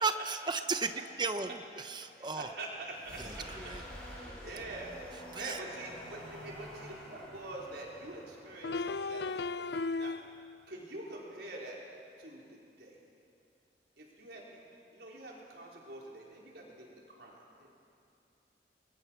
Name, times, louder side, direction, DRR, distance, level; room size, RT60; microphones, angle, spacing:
voice 1, 0.0-2.5 3.2-3.8 5.3-5.7, right 4 dB, 25° right, 8 dB, 0.9 m, -35 dB
voice 2, 2.2-3.4 4.0-4.9 5.3-9.7 10.0-10.2 10.7-11.8 12.2-12.5 12.8-13.0 14.0-14.4 14.9-17.7, right 2 dB, 70° right, -3 dB, 4.6 m, -45 dB
sound 1, 2.9-10.6, equal, 5° left, 7.6 m, -49 dB
sound 2, 7.3-7.4 8.6-10.6, left 3 dB, 70° left, 0.5 m, -35 dB
29.0 x 21.5 x 6.0 m, 2.5 s
head